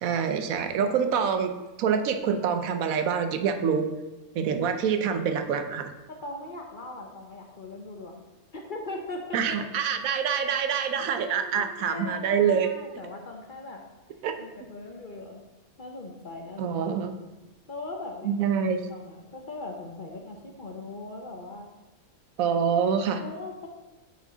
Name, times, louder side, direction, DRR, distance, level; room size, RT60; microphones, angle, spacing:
voice 1, 0.0-1.5 1.8-3.9 4.3-5.9 9.3-12.7 14.2-14.3 16.6-17.1 18.2-18.8 22.4-23.2, right 7 dB, 80° right, 7 dB, 1.1 m, -26 dB
voice 2, 6.1-8.2 8.5-9.6 11.2-13.8 14.4-15.4 15.8-16.8 17.7-18.6 18.9-21.7 23.2-23.7, left 2 dB, 45° left, 1 dB, 0.8 m, -40 dB
6.3 x 5.2 x 3.9 m, 1.1 s
omnidirectional pair, 1.5 m